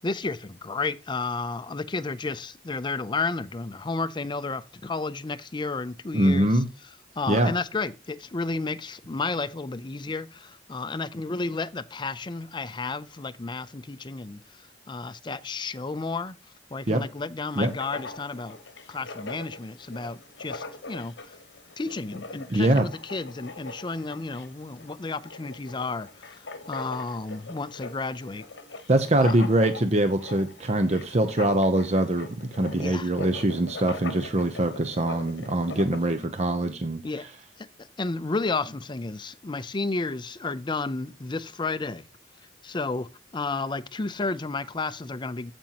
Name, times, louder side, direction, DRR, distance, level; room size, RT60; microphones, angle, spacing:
voice 1, 0.0-6.6 7.2-14.4 14.9-16.3 16.7-18.6 18.9-21.4 21.8-26.4 26.7-28.5 29.2-29.4 32.7-33.1 37.0-37.2 37.6-42.0 42.6-43.1 43.3-45.5, left 3 dB, 25° left, 0.5 m, -32 dB
voice 2, 6.1-6.7 7.3-7.5 16.9-17.0 17.6-17.7 22.5-22.9 28.9-37.0, right 1 dB, 35° right, 0.7 m, -23 dB
Writing, 17.5-36.3, left 3 dB, 65° left, 1.2 m, -42 dB
15.0 x 5.3 x 2.9 m
head